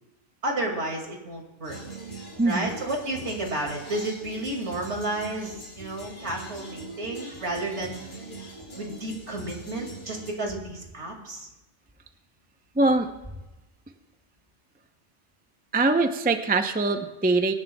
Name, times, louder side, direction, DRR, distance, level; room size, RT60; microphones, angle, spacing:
voice 1, 0.4-1.8 2.5-8.0 8.8-11.5, right 2 dB, 70° right, 1 dB, 2.5 m, -31 dB
sound 1, 1.6-10.3, right 2 dB, 75° left, 4.2 m, -42 dB
voice 2, 2.4-2.7 12.8-13.1 15.7-17.5, right 3 dB, 10° right, 6 dB, 0.5 m, -22 dB
24.5 x 11.0 x 2.3 m, 1.0 s
omnidirectional pair, 1.2 m